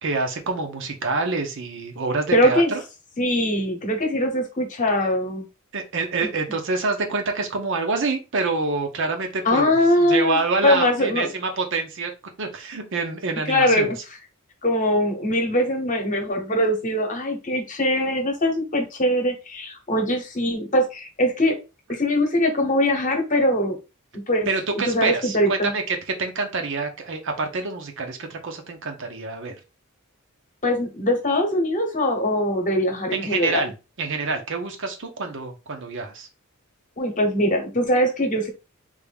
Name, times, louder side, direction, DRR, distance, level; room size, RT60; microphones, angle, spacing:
voice 1, 0.0-2.8 5.7-9.7 10.1-12.1 12.4-13.9 24.5-29.6 33.1-33.7 34.0-36.3, right 3 dB, 60° right, 5 dB, 0.7 m, -27 dB
voice 2, 2.3-2.7 3.2-5.5 9.4-11.3 13.5-14.0 14.6-21.5 21.9-23.8 24.3-24.5 24.9-25.7 30.6-33.6 37.0-38.5, left 1 dB, 35° left, 3 dB, 1.0 m, -22 dB
3.5 x 2.6 x 3.5 m, 0.28 s
head